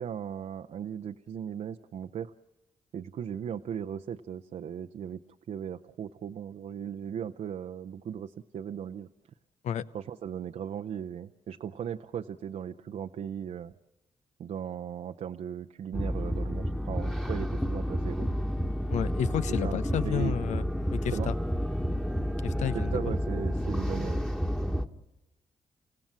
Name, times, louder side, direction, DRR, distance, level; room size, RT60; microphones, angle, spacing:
voice 1, 0.0-2.3 2.9-5.2 5.5-9.1 9.9-13.7 14.4-18.3 19.6-20.5 21.1-21.3 22.7-24.2, right 8 dB, 70° right, 5 dB, 0.7 m, -37 dB
sound 1, 15.9-24.9, equal, 5° left, 1.6 m, -30 dB
voice 2, 18.9-20.6 21.0-21.3 22.4-23.1, left 9 dB, 80° left, 14 dB, 0.9 m, -31 dB
29.5 x 16.5 x 7.4 m, 1.0 s
cardioid pair, 70°, 12 cm